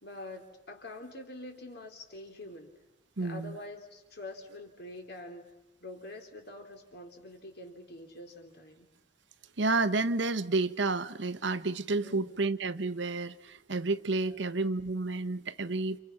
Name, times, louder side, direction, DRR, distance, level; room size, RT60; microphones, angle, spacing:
voice 1, 0.0-2.7 3.2-5.5 5.8-8.9 12.0-12.5 14.2-14.4, left 1 dB, 55° left, 3.8 m, -46 dB
voice 2, 3.2-3.5 9.6-16.0, right 3 dB, 65° right, 1.0 m, -30 dB
30.0 x 28.5 x 5.9 m
head